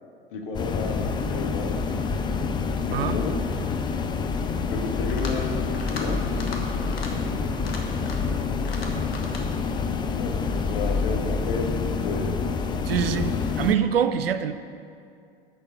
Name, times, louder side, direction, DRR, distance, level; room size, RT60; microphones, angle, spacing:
voice 1, 0.3-2.0 2.9-3.4 4.7-6.2 10.2-12.4 12.9-13.3, left 3 dB, 60° left, 1 dB, 1.3 m, -32 dB
sound 1, 0.5-13.7, left 5 dB, 15° left, 0.4 m, -27 dB
sound 2, 5.0-5.4 5.7-6.1 6.3-6.6 6.9-7.1 7.5-8.3 8.7-9.4, left 4 dB, 80° left, 1.1 m, -37 dB
voice 2, 12.9-13.3 13.6-14.5, right 9 dB, 75° right, 11 dB, 0.5 m, -24 dB
6.7 x 5.8 x 7.0 m, 2.4 s
figure-of-eight pair, 80°, 30 cm